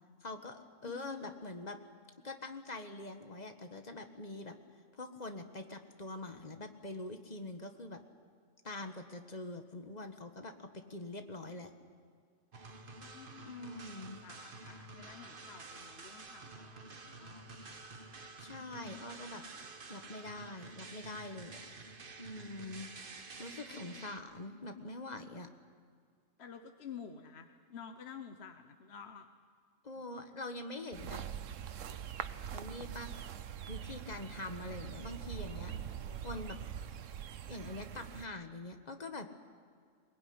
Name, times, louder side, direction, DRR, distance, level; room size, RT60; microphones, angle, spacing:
voice 1, 0.2-1.8 2.2-4.6 4.9-8.0 8.6-11.7 13.4-14.2 18.4-19.4 19.9-21.7 22.2-22.9 23.2-25.5 29.8-31.2 32.5-33.1 33.7-35.7 36.2-36.6 37.5-39.3, left 2 dB, 35° left, 6 dB, 1.5 m, -44 dB
voice 2, 0.8-1.3 13.0-17.5 18.8-19.2 23.7-24.1 26.4-29.3 35.6-36.3, left 7 dB, 55° left, 6 dB, 1.3 m, -51 dB
sound 1, 12.5-24.2, right 3 dB, 45° right, 1.4 m, -50 dB
sound 2, 30.9-38.3, right 9 dB, 75° right, 1.2 m, -43 dB
21.5 x 20.0 x 9.6 m, 2.1 s
omnidirectional pair, 1.4 m